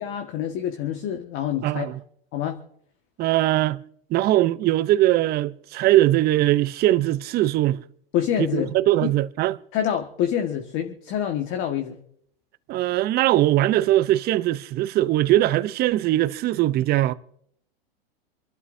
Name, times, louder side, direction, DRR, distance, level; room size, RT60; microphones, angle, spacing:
voice 1, 0.0-1.9 2.3-2.6 8.1-8.7 9.0-9.1 9.7-12.0, left 9 dB, 45° left, 1.7 m, -26 dB
voice 2, 1.6-2.0 3.2-3.8 4.1-7.8 8.4-9.6 12.7-17.1, right 15 dB, 30° right, 0.7 m, -21 dB
27.5 x 12.0 x 2.7 m
hypercardioid pair, 115°, 30 cm